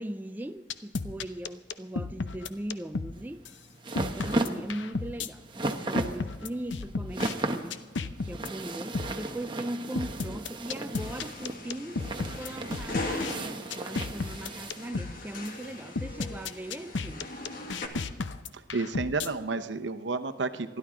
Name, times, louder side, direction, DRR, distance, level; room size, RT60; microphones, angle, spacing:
voice 1, 0.0-3.5 4.0-12.0 12.4-17.4, right 1 dB, 10° right, 0.4 m, -39 dB
sound 1, 0.7-3.1 3.5-3.6 4.0-5.3 6.0-7.3 7.7-8.5 8.9-9.1 10.0-13.3 13.7-15.1 15.5-15.6 16.0-19.3, left 3 dB, 85° left, 0.7 m, -33 dB
sound 2, 3.2-14.9, right 2 dB, 25° right, 0.9 m, -35 dB
sound 3, 10.9-17.9, left 2 dB, 50° left, 1.8 m, -40 dB
voice 2, 18.5-20.8, right 3 dB, 80° right, 0.8 m, -31 dB
28.5 x 11.5 x 3.7 m
head